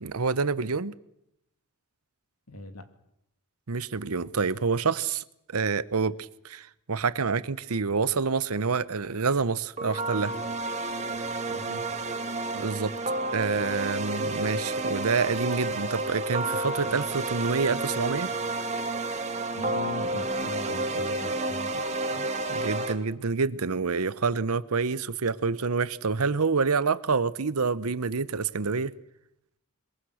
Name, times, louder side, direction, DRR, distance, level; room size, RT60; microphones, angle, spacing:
voice 1, 0.0-0.9 3.7-5.2 5.5-10.3 12.5-12.9 13.3-18.3 22.5-28.9, right 4 dB, 70° right, 0.9 m, -27 dB
voice 2, 2.5-2.9 11.5-12.0 19.5-22.2, left 1 dB, 90° left, 2.5 m, -41 dB
sound 1, 9.8-22.9, right 2 dB, 30° right, 2.1 m, -30 dB
22.5 x 22.5 x 6.4 m
head